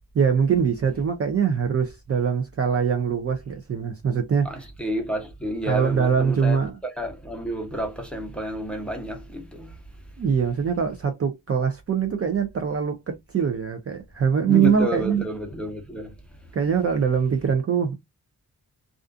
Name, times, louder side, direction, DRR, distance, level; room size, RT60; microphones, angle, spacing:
voice 1, 0.1-4.5 5.7-6.7 10.2-15.2 16.5-17.9, right 7 dB, 40° right, 0.4 m, -23 dB
voice 2, 4.4-9.8 14.5-16.1, equal, 5° left, 0.7 m, -30 dB
2.4 x 2.4 x 2.3 m
wide cardioid pair, 120°, 38 cm